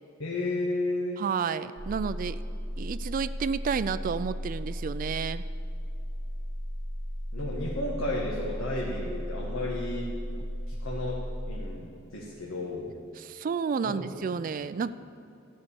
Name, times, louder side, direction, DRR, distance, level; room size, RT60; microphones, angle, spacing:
voice 1, 0.2-1.2 7.3-10.1 10.7-11.2 11.5-12.9 13.8-14.0 14.6-14.7, left 2 dB, 85° left, -3 dB, 1.5 m, -33 dB
voice 2, 1.2-2.4 2.8-5.4 13.2-14.9, right 6 dB, 40° right, 14 dB, 0.3 m, -31 dB
sound 1, 1.8-11.8, equal, 60° left, 2.4 m, -35 dB
14.0 x 6.6 x 8.4 m, 2.7 s
head